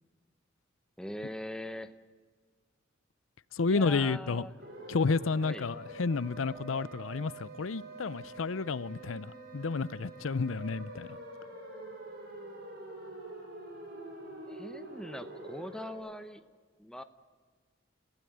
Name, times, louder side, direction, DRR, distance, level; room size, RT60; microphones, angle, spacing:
voice 1, 1.0-1.9 3.6-4.5 5.4-5.7 14.5-16.4 16.8-17.0, left 1 dB, 5° left, 9 dB, 1.0 m, -41 dB
voice 2, 3.5-4.5 4.9-11.2, left 4 dB, 90° left, 19 dB, 0.6 m, -31 dB
sound 1, 4.6-16.0, right 2 dB, 50° right, 7.2 m, -46 dB
28.5 x 16.0 x 9.4 m, 1.5 s
head